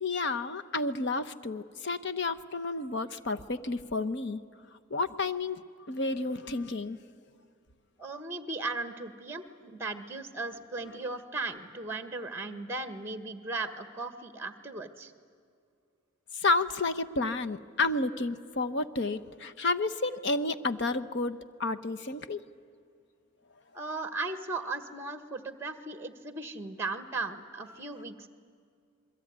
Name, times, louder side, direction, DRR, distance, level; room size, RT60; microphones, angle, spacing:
voice 1, 0.0-4.4 4.9-7.0 16.3-22.4, left 3 dB, 55° left, 11 dB, 0.9 m, -31 dB
voice 2, 8.0-15.1 23.7-28.3, right 3 dB, 10° right, 9 dB, 1.4 m, -37 dB
28.0 x 22.0 x 9.5 m, 2.3 s
head